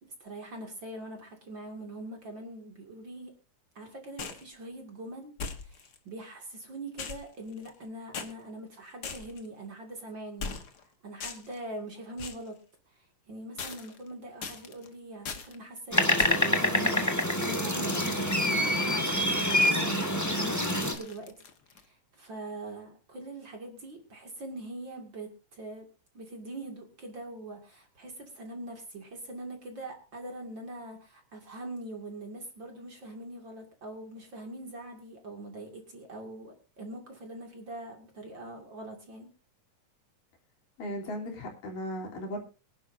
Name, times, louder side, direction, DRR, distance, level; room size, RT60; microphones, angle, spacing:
voice 1, 0.0-3.3 3.7-10.6 11.0-12.6 12.9-21.5 21.7-25.9 26.1-39.3, right 1 dB, 35° right, 3 dB, 2.7 m, -43 dB
sound 1, 4.2-4.5 5.4-6.0 7.0-7.8 8.1-8.3 9.0-9.5 10.4-10.8 11.2-11.6 12.2-12.5 13.6-14.1 14.4-14.9 15.2-15.6 16.2-16.6 17.9-21.8, left 5 dB, 50° left, 1.2 m, -41 dB
sound 2, 15.9-20.9, left 1 dB, 10° left, 0.7 m, -26 dB
voice 2, 40.8-42.4, equal, 80° left, 1 dB, 5.0 m, -36 dB
23.5 x 11.0 x 2.7 m, 0.33 s
omnidirectional pair, 3.8 m